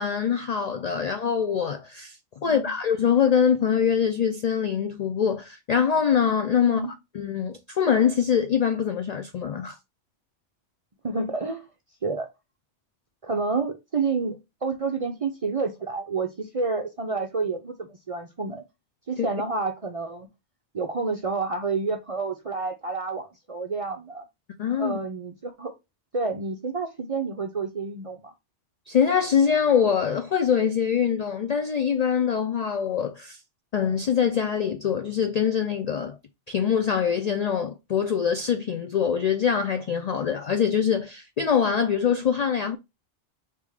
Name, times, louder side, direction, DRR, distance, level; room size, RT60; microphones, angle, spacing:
voice 1, 0.0-2.2 2.4-6.8 7.1-9.8 19.2-19.3 24.6-25.0 28.9-33.4 33.7-36.2 36.5-42.8, left 7 dB, 60° left, 0.4 m, -24 dB
voice 2, 11.0-11.7 12.0-12.3 13.2-18.6 19.1-20.3 20.7-24.3 24.8-25.7 26.1-28.3, right 4 dB, 45° right, 0.5 m, -29 dB
3.4 x 2.9 x 4.8 m
omnidirectional pair, 1.2 m